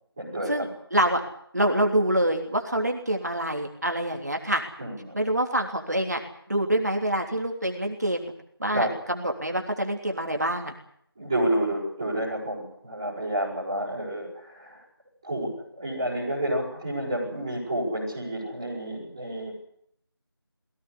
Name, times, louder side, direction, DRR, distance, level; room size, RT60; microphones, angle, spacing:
voice 1, 0.2-0.7 4.8-5.2 8.7-8.9 11.1-14.8 15.2-19.5, right 1 dB, 5° right, -11 dB, 6.2 m, -29 dB
voice 2, 0.9-1.2 1.5-4.6 5.1-6.2 6.5-8.3 8.6-10.7, right 1 dB, 40° right, 2 dB, 3.3 m, -26 dB
22.0 x 17.5 x 9.9 m, 0.70 s
figure-of-eight pair, 175°, 13 cm